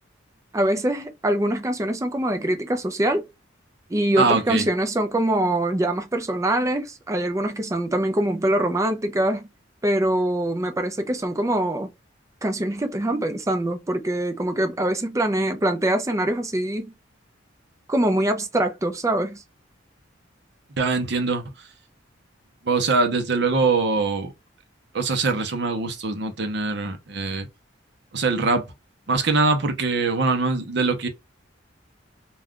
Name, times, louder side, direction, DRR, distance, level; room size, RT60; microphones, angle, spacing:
voice 1, 0.5-3.2 3.9-9.5 9.8-11.9 12.4-16.9 17.9-19.4, right 1 dB, 15° right, 0.4 m, -23 dB
voice 2, 4.2-4.7 20.8-21.7 22.6-24.3 24.9-27.5 28.1-28.7 29.1-31.1, right 3 dB, 60° right, 0.7 m, -23 dB
2.3 x 2.3 x 3.6 m
head